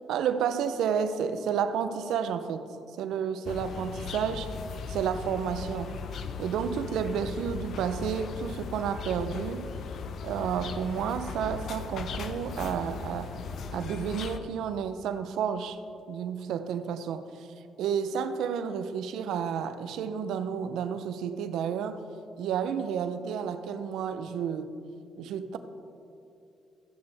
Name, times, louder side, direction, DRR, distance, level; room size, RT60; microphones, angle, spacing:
voice 1, 0.1-2.6 3.0-4.5 4.9-5.9 6.4-9.7 10.2-13.3 13.7-15.8 16.1-17.5 17.8-22.0 22.4-24.7 25.2-25.6, right 7 dB, 85° right, 10 dB, 0.5 m, -31 dB
sound 1, 3.4-14.4, left 5 dB, 65° left, 0.6 m, -38 dB
13.5 x 9.6 x 3.4 m, 2.6 s
cardioid pair, 90°, 0 cm